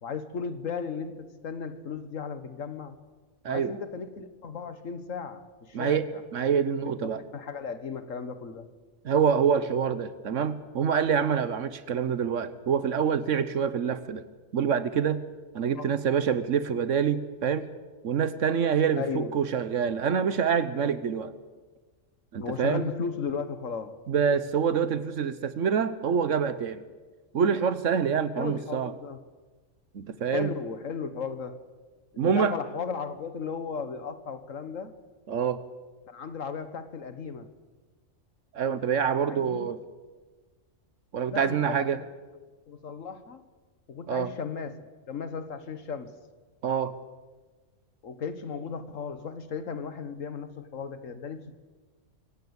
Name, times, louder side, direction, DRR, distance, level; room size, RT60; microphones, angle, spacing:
voice 1, 0.0-3.0 3.5-6.2 7.0-8.7 15.7-15.9 19.0-19.3 22.4-24.0 28.4-29.2 30.3-31.6 32.1-34.9 36.1-37.5 39.2-39.7 41.3-42.1 42.7-43.4 43.9-46.1 48.0-51.5, left 5 dB, 80° left, 1.7 m, -35 dB
voice 2, 5.7-6.1 6.3-7.2 9.0-14.2 14.5-15.2 15.5-17.7 18.0-21.3 22.3-22.8 24.1-26.8 27.3-28.9 29.9-30.5 32.2-32.5 35.3-35.6 38.5-39.8 41.1-42.0 44.1-44.3 46.6-47.0, right 7 dB, 75° right, 1.3 m, -26 dB
24.5 x 16.5 x 8.2 m
omnidirectional pair, 1.3 m